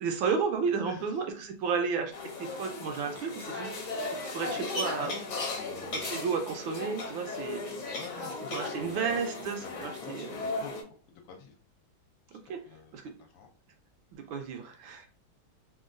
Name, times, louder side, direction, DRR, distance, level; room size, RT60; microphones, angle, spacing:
voice 1, 0.0-2.1 2.4-3.7 4.3-5.1 5.9-7.6 8.5-10.4 12.5-12.6 12.9-13.0 14.2-15.1, right 5 dB, 80° right, 4 dB, 1.3 m, -32 dB
sound 1, 2.1-10.8, left 2 dB, 55° left, 1.3 m, -36 dB
voice 2, 4.9-6.2 7.9-9.2 9.6-10.7 11.1-11.5 12.3-12.4 12.6-12.9 13.2-13.5, left 6 dB, 75° left, 3 dB, 1.3 m, -48 dB
3.6 x 2.3 x 2.5 m, 0.39 s
omnidirectional pair, 2.3 m